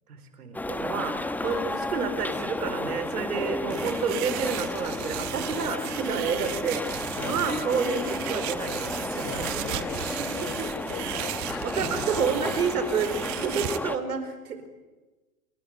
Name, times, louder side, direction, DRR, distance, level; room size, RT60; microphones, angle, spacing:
voice 1, 0.1-9.6 10.1-10.8 11.6-14.7, right 5 dB, 75° right, 9 dB, 4.7 m, -30 dB
sound 1, 0.5-14.0, left 2 dB, 5° left, 1.0 m, -33 dB
sound 2, 3.7-13.8, right 16 dB, 40° right, 1.5 m, -36 dB
voice 2, 9.2-12.0 13.4-13.7, left 8 dB, 45° left, 12 dB, 3.8 m, -40 dB
28.5 x 20.0 x 9.3 m, 1.2 s
hypercardioid pair, 105°, 46 cm